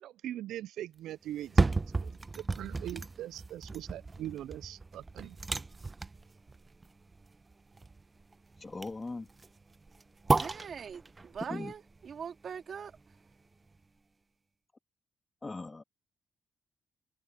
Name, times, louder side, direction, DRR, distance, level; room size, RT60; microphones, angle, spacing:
voice 1, 0.0-5.4, right 13 dB, 80° right, 0.3 m, -42 dB
sound 1, 1.3-13.3 13.7-13.8, right 3 dB, 25° right, 0.6 m, -34 dB
voice 2, 8.6-9.3 11.4-11.7 15.4-15.8, left 3 dB, 25° left, 2.0 m, -39 dB
voice 3, 10.4-13.0, right 7 dB, 50° right, 3.1 m, -42 dB
cardioid pair, 90°, 0 cm